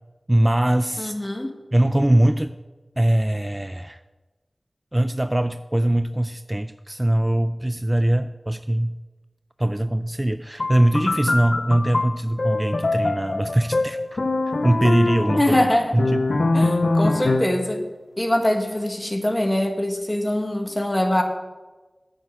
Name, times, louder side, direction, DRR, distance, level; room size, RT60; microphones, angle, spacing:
voice 1, 0.3-1.1 1.7-2.5 3.0-4.0 4.9-9.0 9.6-14.2 14.6-15.6 15.9-16.2, right 1 dB, 20° right, 10 dB, 0.4 m, -21 dB
voice 2, 1.0-1.6 15.4-15.9 16.5-17.8 18.2-21.2, left 1 dB, 20° left, 4 dB, 1.6 m, -23 dB
sound 1, 10.6-17.7, left 2 dB, 70° left, 0.6 m, -23 dB
9.0 x 6.6 x 7.7 m, 1.2 s
wide cardioid pair, 50°, 0 cm